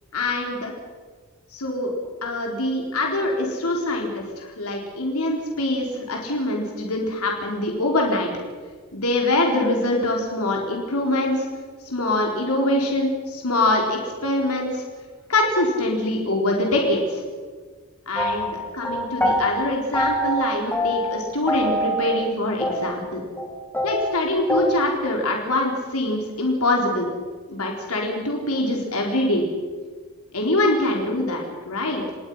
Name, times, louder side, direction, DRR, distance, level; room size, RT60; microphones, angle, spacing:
voice 1, 0.1-0.7 1.5-1.9 2.2-8.3 8.9-11.5 11.8-14.8 15.3-17.2 18.1-23.2 23.8-27.1 27.5-29.5 30.3-32.0, left 1 dB, 85° left, 0 dB, 4.3 m, -24 dB
sound 1, 18.2-19.5 19.9-20.4 20.7-21.2 21.5-22.3 22.6-22.7 23.0-23.1 23.4-23.5 23.7-24.7, equal, 10° left, 4.5 m, -24 dB
29.0 x 20.5 x 5.7 m, 1.5 s
head